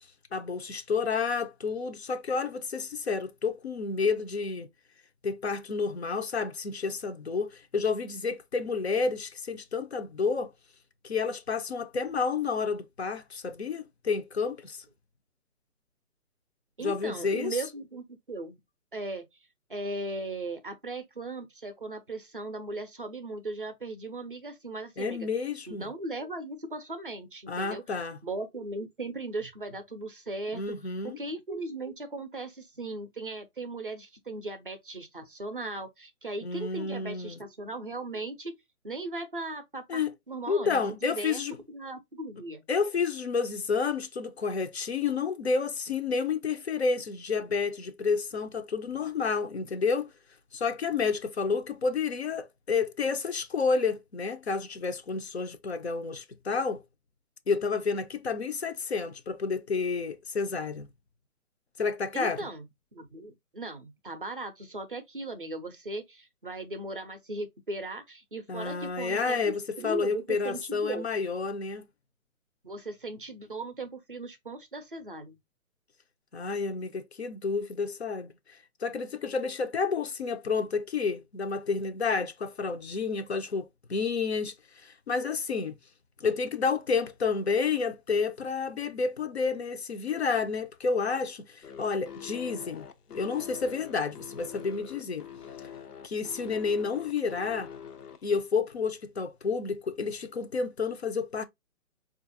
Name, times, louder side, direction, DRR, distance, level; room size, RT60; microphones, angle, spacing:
voice 1, 0.3-4.7 5.2-10.5 11.0-14.8 16.8-17.6 25.0-25.9 27.5-28.2 30.5-31.2 36.4-37.4 39.9-40.1 40.5-41.6 42.7-50.1 50.5-56.8 57.5-60.9 61.8-62.5 68.5-71.8 76.3-85.8 86.2-95.3 96.0-97.7 98.2-101.4, left 5 dB, 45° left, 0.5 m, -30 dB
voice 2, 16.8-18.6 18.9-19.3 19.7-25.3 25.7-27.8 28.2-30.6 31.0-38.5 38.8-41.4 41.7-42.6 62.1-71.1 72.6-75.4, right 2 dB, 40° right, 0.5 m, -38 dB
sound 1, 91.6-98.4, left 8 dB, 85° left, 0.8 m, -44 dB
4.3 x 2.4 x 2.6 m
hypercardioid pair, 165°, 45 cm